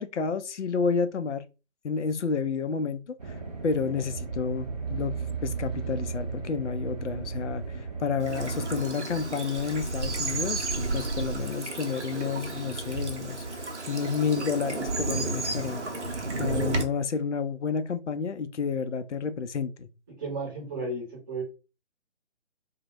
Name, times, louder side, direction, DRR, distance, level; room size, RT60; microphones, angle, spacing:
voice 1, 0.0-1.4 1.8-3.2 3.6-13.5 13.9-15.8 16.4-19.9, left 5 dB, 80° left, 0.5 m, -30 dB
sound 1, 3.2-8.8, right 5 dB, 35° right, 0.4 m, -35 dB
Bird vocalization bird call bird song / Stream, 8.2-16.8, right 3 dB, 80° right, 0.7 m, -32 dB
voice 2, 20.2-21.4, right 2 dB, 20° right, 0.8 m, -33 dB
2.1 x 2.1 x 2.9 m
figure-of-eight pair, 140°, 35 cm